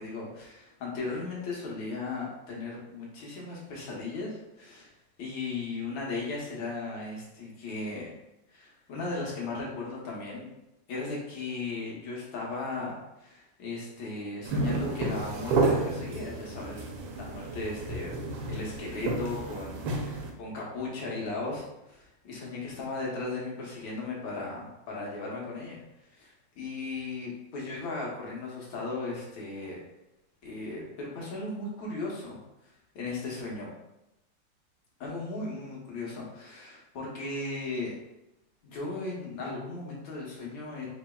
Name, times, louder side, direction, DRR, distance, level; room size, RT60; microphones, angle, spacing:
voice 1, 0.0-4.9 5.2-8.1 8.5-10.5 10.9-16.8 17.2-18.1 18.4-25.8 26.1-29.8 30.4-32.4 33.0-33.7 35.0-37.9 38.6-40.9, left 3 dB, 85° left, -3 dB, 1.7 m, -36 dB
sound 1, 14.4-20.3, right 3 dB, 80° right, 1.3 m, -31 dB
4.5 x 3.0 x 2.2 m, 0.91 s
omnidirectional pair, 2.1 m